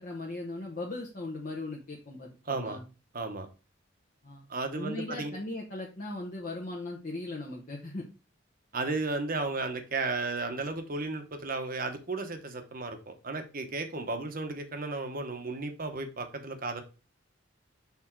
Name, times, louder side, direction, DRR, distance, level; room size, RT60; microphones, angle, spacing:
voice 1, 0.0-2.8 4.2-4.4 4.7-8.1, left 2 dB, 45° left, 1.0 m, -38 dB
voice 2, 2.5-2.8 3.1-3.5 4.5-5.4 8.7-16.8, right 3 dB, 45° right, 1.0 m, -34 dB
5.9 x 3.7 x 4.5 m
head